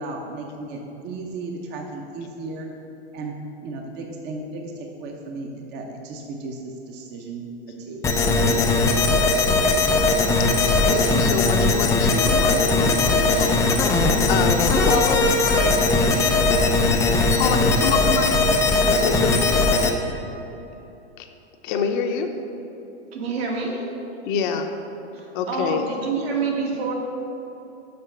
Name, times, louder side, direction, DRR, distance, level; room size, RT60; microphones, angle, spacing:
voice 1, 0.0-2.7 3.1-3.4 3.6-7.5 7.8-9.6, right 2 dB, 30° right, 2 dB, 0.9 m, -35 dB
sound 1, 8.0-19.9, left 3 dB, 10° left, 0.4 m, -19 dB
voice 2, 10.6-13.8 14.3-16.7 17.4-18.3 18.9-19.6 21.2-21.3 21.6-22.3 24.3-24.7 25.3-25.8, left 6 dB, 50° left, 5 dB, 0.8 m, -27 dB
voice 3, 23.1-23.9 25.1-26.9, right 4 dB, 65° right, -1 dB, 2.0 m, -27 dB
6.9 x 5.2 x 6.5 m, 3.0 s
hypercardioid pair, 125°, 34 cm